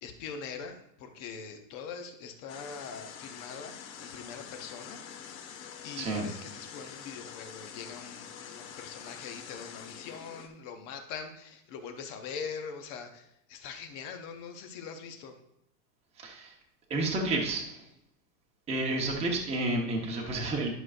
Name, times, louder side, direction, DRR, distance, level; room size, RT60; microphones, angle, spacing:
voice 1, 0.0-5.0 5.5-15.4, left 6 dB, 25° left, 6 dB, 0.7 m, -43 dB
sound 1, 2.5-10.5, left 8 dB, 55° left, 1.5 m, -46 dB
voice 2, 6.0-6.3 16.2-16.5 16.9-17.8 18.7-20.7, right 2 dB, 10° right, -1 dB, 1.0 m, -30 dB
11.0 x 6.3 x 2.5 m, 0.81 s
supercardioid pair, 160°, 49 cm